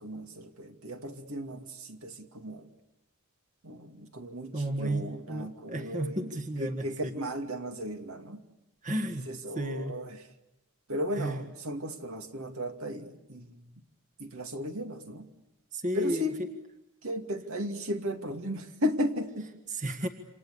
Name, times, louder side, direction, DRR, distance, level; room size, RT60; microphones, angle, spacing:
voice 1, 0.0-2.7 3.6-8.4 9.3-10.2 10.9-13.7 14.2-15.3 15.9-16.4 17.0-19.5, equal, 70° right, 5 dB, 2.5 m, -35 dB
voice 2, 4.5-7.1 8.8-9.3 9.6-9.9 11.2-11.4 15.7-16.3 19.7-20.1, right 1 dB, 35° right, 6 dB, 1.7 m, -32 dB
28.0 x 26.5 x 6.9 m, 0.94 s
head